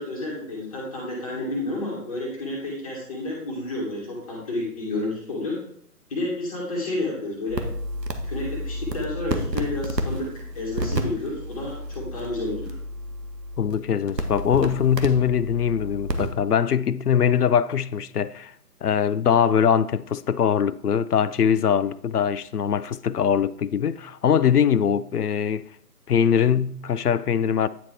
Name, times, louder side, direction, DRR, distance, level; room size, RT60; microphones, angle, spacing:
voice 1, 0.0-5.5 6.1-7.7 8.2-10.3 10.5-12.8, left 2 dB, 20° left, 1.7 m, -30 dB
sound 1, 7.5-16.3, right 1 dB, 85° right, 1.2 m, -31 dB
voice 2, 13.6-18.5 18.8-25.7 26.1-27.7, left 8 dB, 70° left, 0.5 m, -22 dB
9.5 x 4.1 x 4.6 m
figure-of-eight pair, 140°, 48 cm